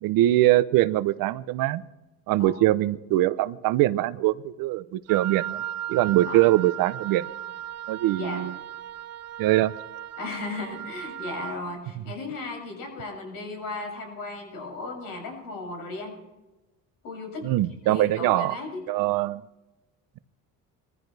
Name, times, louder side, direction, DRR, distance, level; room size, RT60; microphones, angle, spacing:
voice 1, 0.0-1.8 2.3-5.6 5.9-7.3 7.9-8.5 9.4-9.7 17.4-18.6 18.9-19.4, right 15 dB, 85° right, 16 dB, 0.8 m, -22 dB
Wind instrument woodwind instrument, 5.1-11.6, right 11 dB, 50° right, 0.9 m, -36 dB
voice 2, 10.2-16.1 17.0-17.5 17.8-18.8, left 3 dB, 85° left, 1 dB, 7.3 m, -36 dB
23.0 x 15.0 x 3.4 m, 1.1 s
cardioid pair, 125°, 33 cm